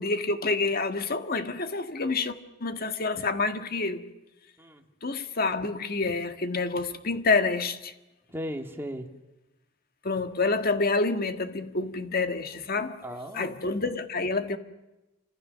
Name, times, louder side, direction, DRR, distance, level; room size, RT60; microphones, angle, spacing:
voice 1, 0.0-2.3 2.6-4.0 5.0-7.9 10.0-13.0 13.3-14.6, left 3 dB, 50° left, 1.7 m, -28 dB
voice 2, 8.3-9.1 12.8-13.5 14.5-14.6, equal, 10° right, 2.3 m, -37 dB
29.0 x 26.0 x 6.6 m
head